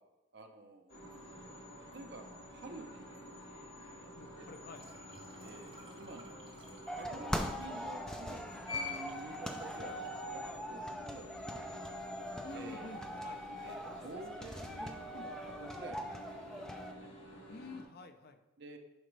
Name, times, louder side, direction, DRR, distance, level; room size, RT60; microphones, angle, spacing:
voice 1, 0.3-1.0 1.9-3.4 3.9-4.5 5.4-6.6 6.9-10.0 10.3-10.4 10.7-11.9 12.2-12.8 13.6-17.1 18.0-18.1 18.6-18.8, right 2 dB, 55° right, 4 dB, 0.9 m, -51 dB
sound 1, 0.9-17.8, left 1 dB, 65° left, 2.2 m, -49 dB
voice 2, 4.1-4.9 12.4-13.4 17.5-18.4, left 3 dB, 50° left, 8 dB, 0.6 m, -49 dB
sound 2, 4.7-7.3 8.1-8.2 8.4-10.9 11.2-11.7 12.0-12.7, right 2 dB, 25° right, 0.8 m, -59 dB
sound 3, 6.9-16.9, equal, 5° left, 0.5 m, -42 dB
11.5 x 5.1 x 3.3 m, 1.0 s
head